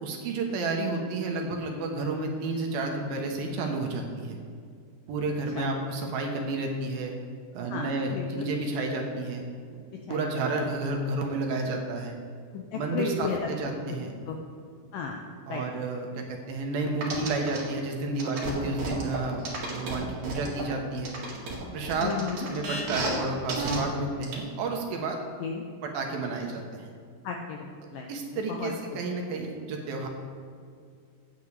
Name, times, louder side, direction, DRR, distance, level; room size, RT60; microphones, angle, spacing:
voice 1, 0.0-4.4 5.1-7.2 7.5-9.4 9.7-9.8 10.1-12.2 12.7-14.1 15.5-19.4 19.7-21.1 21.7-22.1 22.4-25.2 25.8-26.9 28.1-30.1, right 3 dB, 70° right, 1 dB, 2.6 m, -31 dB
voice 2, 7.7-8.5 10.1-10.3 12.5-13.5 14.3-14.4 14.9-15.2 15.5-15.6 22.0-22.5 25.4-25.6 27.2-28.1 28.5-28.7, left 5 dB, 85° left, 2 dB, 2.0 m, -33 dB
sound 1, 17.0-17.6 18.2-20.6 21.0-23.2 23.5-23.8 24.2-24.3, right 3 dB, 50° right, 3.0 m, -32 dB
15.5 x 9.5 x 3.4 m, 2.2 s
omnidirectional pair, 4.8 m